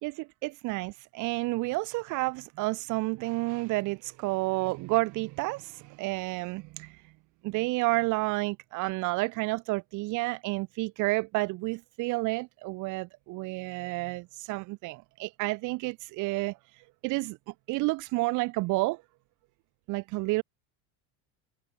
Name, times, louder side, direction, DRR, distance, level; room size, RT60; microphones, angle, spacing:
voice 1, 0.0-7.0 7.4-17.4 17.7-19.0 19.9-20.4, right 23 dB, 50° right, 2.2 m, -30 dB
cardioid pair, 170°, 39 cm